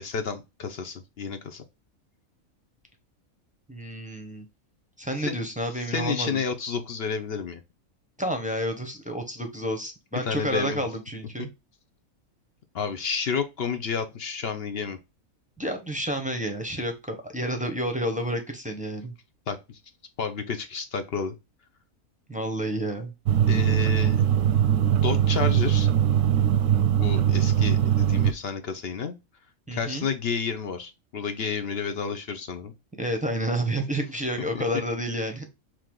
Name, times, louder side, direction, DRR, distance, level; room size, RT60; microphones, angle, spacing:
voice 1, 0.0-1.6 5.2-5.4 5.7-7.6 10.2-10.8 12.7-15.0 19.5-19.6 20.2-21.3 23.5-24.3 25.0-25.9 27.0-29.1 29.7-32.7 34.5-34.6, left 5 dB, 55° left, 0.8 m, -30 dB
voice 2, 3.7-4.4 5.0-6.4 8.2-11.5 15.6-19.1 22.3-23.1 29.7-30.1 33.0-35.4, equal, 5° right, 0.8 m, -30 dB
sound 1, 23.3-28.3, right 10 dB, 70° right, 0.9 m, -21 dB
4.8 x 3.0 x 3.7 m
omnidirectional pair, 1.5 m